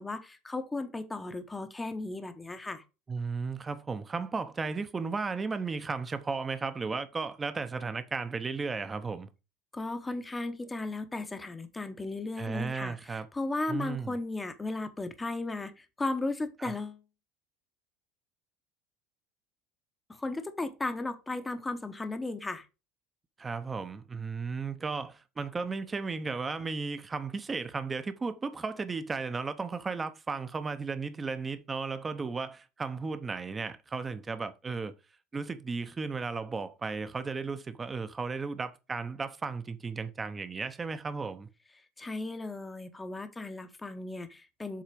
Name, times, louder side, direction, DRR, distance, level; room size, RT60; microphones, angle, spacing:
voice 1, 0.0-2.8 9.7-17.0 20.2-22.7 42.0-44.8, left 2 dB, 10° left, 0.9 m, -35 dB
voice 2, 3.1-9.3 12.4-13.3 13.7-14.2 16.6-16.7 23.4-34.9 35.3-41.5, right 4 dB, 15° right, 0.8 m, -35 dB
7.6 x 4.0 x 5.1 m
cardioid pair, 140°, 0 cm